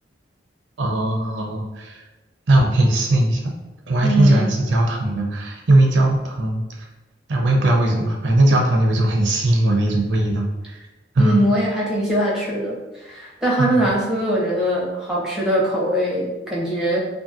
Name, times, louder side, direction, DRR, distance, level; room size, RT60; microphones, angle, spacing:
voice 1, 0.8-2.0 2.5-3.5 3.9-6.9 7.3-10.8 11.1-11.4 13.6-13.9, right 1 dB, 80° right, 1 dB, 0.5 m, -19 dB
voice 2, 4.0-4.5 11.2-17.0, right 1 dB, 5° right, -5 dB, 0.6 m, -21 dB
2.6 x 2.5 x 2.5 m, 1.1 s
head